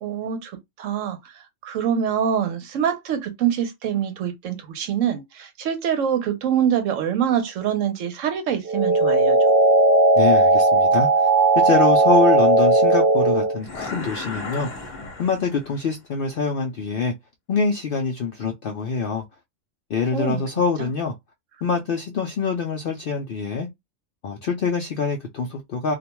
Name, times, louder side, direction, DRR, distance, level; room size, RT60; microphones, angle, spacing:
voice 1, 0.0-1.2 1.6-9.4 20.1-20.4 20.8-20.9, right 9 dB, 75° right, 0.9 m, -25 dB
sound 1, 8.7-13.6, right 2 dB, 60° right, 0.7 m, -16 dB
voice 2, 10.1-11.3 11.6-14.7 15.2-17.1 17.5-19.2 19.9-21.1 21.6-23.7 24.2-25.9, left 5 dB, 70° left, 0.5 m, -25 dB
sound 2, 13.6-15.9, left 3 dB, 40° left, 0.8 m, -35 dB
2.4 x 2.2 x 2.9 m
omnidirectional pair, 1.4 m